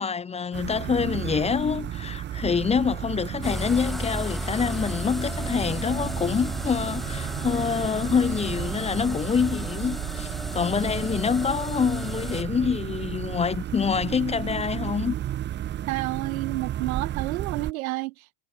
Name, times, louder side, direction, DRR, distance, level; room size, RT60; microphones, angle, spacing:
voice 1, 0.0-15.1, left 6 dB, 15° left, 0.6 m, -26 dB
sound 1, 0.5-17.7, right 11 dB, 25° right, 0.6 m, -33 dB
sound 2, 3.4-12.4, equal, ahead, 1.4 m, -34 dB
voice 2, 15.9-18.3, right 21 dB, 85° right, 0.9 m, -30 dB
supercardioid pair, 120°, 41 cm